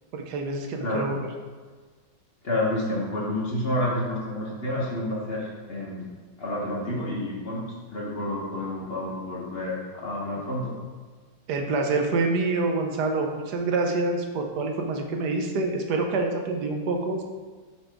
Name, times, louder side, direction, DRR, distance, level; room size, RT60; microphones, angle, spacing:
voice 1, 0.1-1.2 11.5-17.2, right 3 dB, 75° right, 3 dB, 1.3 m, -26 dB
voice 2, 2.4-6.0 6.4-7.6 7.9-10.8, left 1 dB, 40° left, -4 dB, 1.1 m, -29 dB
7.3 x 5.1 x 3.5 m, 1.4 s
omnidirectional pair, 1.8 m